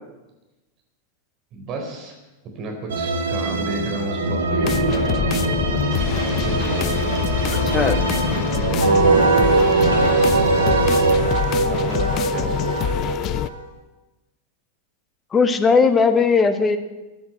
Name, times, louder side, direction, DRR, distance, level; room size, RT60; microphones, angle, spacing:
voice 1, 1.5-2.1 2.5-5.4 6.2-7.0 7.6-11.1 11.7-12.9, right 2 dB, 35° right, 1 dB, 4.1 m, -32 dB
sound 1, 2.9-11.1, right 2 dB, 65° right, 1.6 m, -23 dB
sound 2, 4.6-13.5, left 11 dB, 35° left, 0.6 m, -25 dB
voice 2, 7.5-8.0 15.3-16.8, left 5 dB, 20° left, 9 dB, 1.4 m, -18 dB
Wind instrument woodwind instrument, 8.8-13.6, right 3 dB, 90° right, 2.4 m, -20 dB
14.5 x 10.5 x 7.5 m, 1.1 s
figure-of-eight pair, 90°, 0 cm